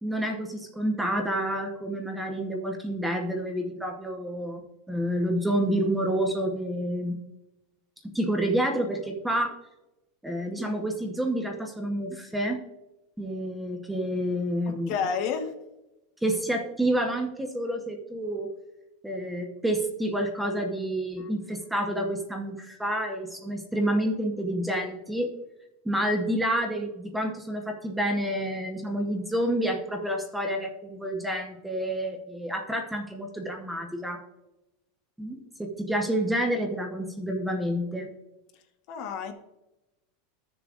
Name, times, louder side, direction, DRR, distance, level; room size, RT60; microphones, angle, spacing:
voice 1, 0.0-7.2 8.1-9.5 10.2-12.6 13.2-15.0 16.2-18.5 19.0-25.3 25.8-34.2 35.2-38.1, right 1 dB, 5° right, 3 dB, 0.9 m, -29 dB
voice 2, 14.7-15.5 21.2-21.3 38.9-39.3, left 6 dB, 45° left, 6 dB, 1.1 m, -30 dB
14.0 x 6.9 x 2.5 m, 0.96 s
supercardioid pair, 160°, 0 cm